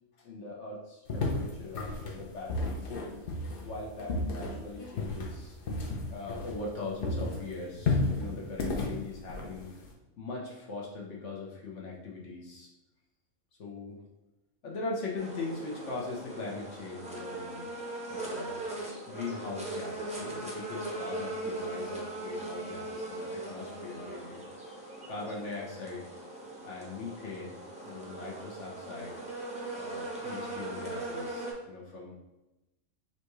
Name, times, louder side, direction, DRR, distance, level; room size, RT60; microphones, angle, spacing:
voice 1, 0.2-2.9 3.6-5.6 6.1-9.7 10.2-12.7 13.6-14.0 14.6-17.7 18.1-18.7 19.1-24.4 25.1-26.1 26.6-27.6 27.8-29.1 29.8-32.1, left 3 dB, 70° left, -3 dB, 1.1 m, -40 dB
sound 1, 1.1-6.8 7.0-9.9, left 2 dB, 55° left, 0.8 m, -33 dB
sound 2, 15.2-31.5, right 2 dB, 10° right, 0.4 m, -39 dB
5.6 x 2.3 x 3.0 m, 1.0 s
omnidirectional pair, 1.3 m